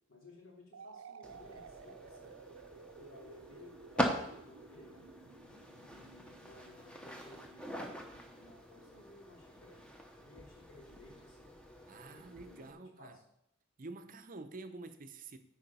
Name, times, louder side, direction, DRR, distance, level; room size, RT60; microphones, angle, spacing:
voice 1, 0.1-2.3 3.0-5.1 5.8-9.9 10.2-11.5 12.0-13.2, left 1 dB, 70° left, 2.8 m, -58 dB
sound 1, 0.7-8.4, right 6 dB, 85° right, 0.5 m, -55 dB
sound 2, 1.2-12.7, equal, 5° left, 0.8 m, -43 dB
voice 2, 11.9-13.2 13.8-15.4, right 3 dB, 40° right, 0.6 m, -48 dB
8.9 x 4.9 x 5.4 m
head